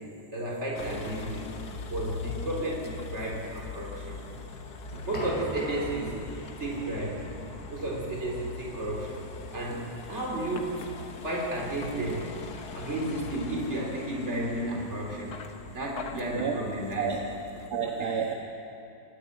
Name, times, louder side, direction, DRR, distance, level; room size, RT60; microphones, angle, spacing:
voice 1, 0.3-1.5 1.8-4.2 5.0-6.2 6.6-7.2 7.7-9.2 9.5-10.8 11.2-12.3 12.7-15.4 15.7-17.1, right 1 dB, 40° right, -1 dB, 3.8 m, -32 dB
Vehicle, 0.7-17.7, left 4 dB, 65° left, 1.8 m, -41 dB
sound 1, 4.7-11.3, equal, 15° left, 4.2 m, -43 dB
voice 2, 17.7-18.3, right 7 dB, 65° right, 1 dB, 2.0 m, -30 dB
23.5 x 14.0 x 9.8 m, 2.9 s
omnidirectional pair, 1.8 m